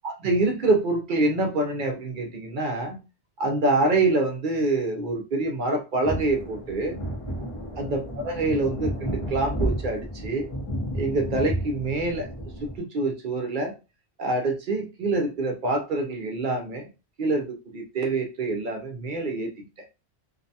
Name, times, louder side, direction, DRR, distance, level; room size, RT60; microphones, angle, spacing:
voice 1, 0.0-3.0 3.4-7.0 7.8-10.5 10.9-12.3 12.6-13.7 14.2-16.9 17.2-19.6, right 2 dB, 55° right, 2 dB, 0.6 m, -26 dB
sound 1, 6.0-12.8, equal, 30° left, 0.7 m, -32 dB
2.5 x 2.2 x 2.6 m, 0.29 s
omnidirectional pair, 1.1 m